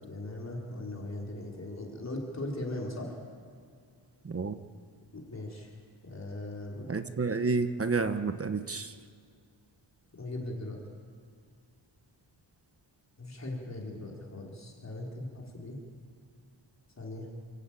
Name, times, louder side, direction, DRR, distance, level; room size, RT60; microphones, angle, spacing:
voice 1, 0.0-3.1 5.1-5.7 6.0-6.9 10.1-10.8 13.2-15.8 17.0-17.3, left 1 dB, 35° left, -1 dB, 4.0 m, -39 dB
voice 2, 4.2-4.6 6.9-8.9, right 4 dB, 30° right, 9 dB, 1.0 m, -30 dB
29.0 x 15.5 x 9.0 m, 2.3 s
wide cardioid pair, 125°, 45 cm